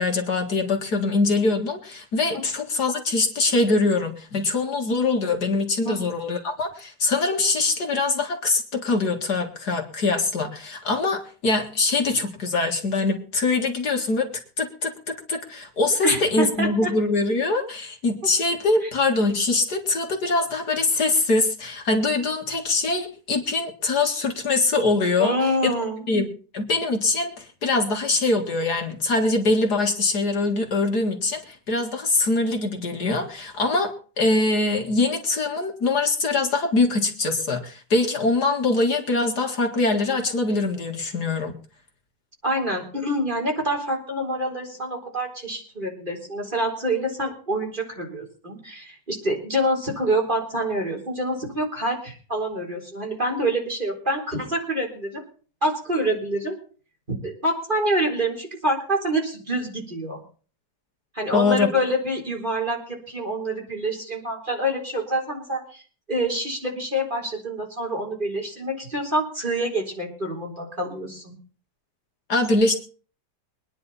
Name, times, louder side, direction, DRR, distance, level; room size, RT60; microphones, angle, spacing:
voice 1, 0.0-14.3 14.6-25.4 25.6-25.7 26.1-26.3 26.5-41.5 61.3-61.7 72.3-72.8, left 3 dB, 60° left, 3 dB, 2.5 m, -23 dB
voice 2, 16.0-16.9 18.8-18.9 25.2-26.1 42.4-55.2 55.6-56.6 57.1-60.2 61.1-65.8 66.1-71.4, right 1 dB, 25° right, 0 dB, 4.1 m, -26 dB
23.5 x 10.0 x 4.2 m, 0.40 s
omnidirectional pair, 2.0 m